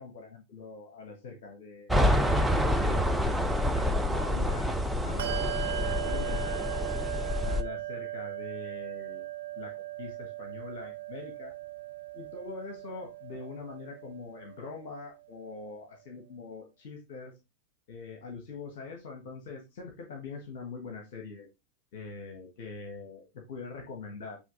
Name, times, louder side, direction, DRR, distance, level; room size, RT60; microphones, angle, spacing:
voice 1, 0.0-2.1 2.8-6.7 7.4-9.3 9.6-9.7 10.0-11.5 12.1-17.3 17.9-21.5 21.9-24.4, left 4 dB, 55° left, 2 dB, 1.7 m, -43 dB
sound 1, 1.9-7.6, left 1 dB, 5° right, 0.8 m, -27 dB
Bell, 5.2-15.2, right 14 dB, 60° right, 0.6 m, -38 dB
8.5 x 3.5 x 3.9 m, 0.24 s
figure-of-eight pair, 90°, 0 cm